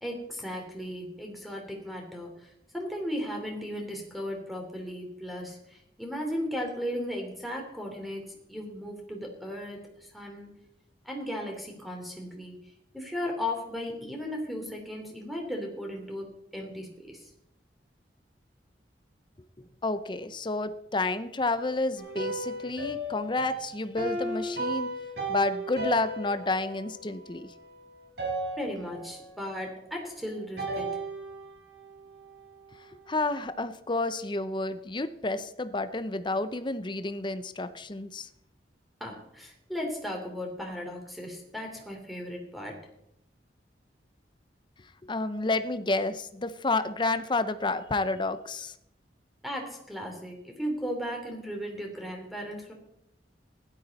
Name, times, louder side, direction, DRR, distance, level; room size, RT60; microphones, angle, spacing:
voice 1, 0.0-10.5 11.0-12.5 12.9-17.3 28.6-30.9 39.0-42.9 49.4-52.7, equal, ahead, 1 dB, 3.0 m, -36 dB
voice 2, 19.8-24.9 25.3-27.5 33.1-38.3 45.0-48.7, left 2 dB, 25° left, 12 dB, 0.7 m, -30 dB
sound 1, 22.0-27.8 28.2-29.3 30.6-32.8, right 1 dB, 65° right, 5.3 m, -35 dB
16.0 x 12.0 x 4.2 m, 0.80 s
head